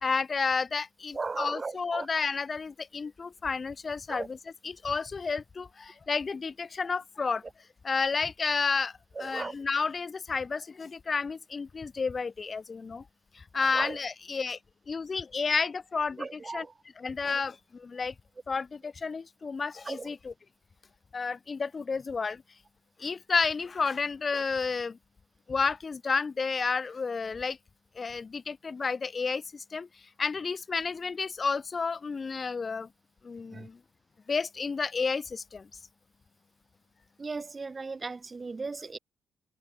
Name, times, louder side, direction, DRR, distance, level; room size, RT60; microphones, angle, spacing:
voice 1, 0.0-4.4 4.6-7.4 7.8-8.9 9.2-13.0 13.3-14.6 14.9-16.6 17.0-18.1 18.5-20.3 21.1-22.4 23.0-25.0 25.5-27.6 27.9-29.9 30.2-32.9 33.2-33.8 34.3-35.7, left 4 dB, 35° left, 1.7 m, -31 dB
voice 2, 1.1-2.1 4.1-4.3 9.2-9.5 13.7-14.0 16.2-16.7 19.9-20.1 33.5-33.7 37.2-39.0, right 4 dB, 30° right, 1.1 m, -36 dB
cardioid pair, 90°, 0 cm